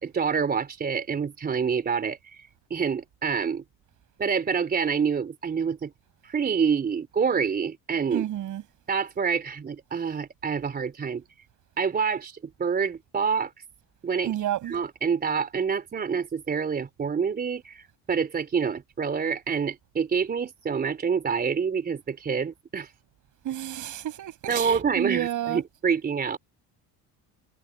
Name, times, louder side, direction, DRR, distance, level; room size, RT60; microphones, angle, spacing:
voice 1, 0.0-3.6 4.2-5.9 6.2-8.2 8.9-11.2 11.8-13.5 14.0-14.3 14.7-22.9 24.5-26.4, right 6 dB, 25° right, 3.7 m, -27 dB
voice 2, 8.1-8.6 14.2-14.8 23.4-25.6, right 12 dB, 50° right, 7.0 m, -30 dB
cardioid pair, 165°, 39 cm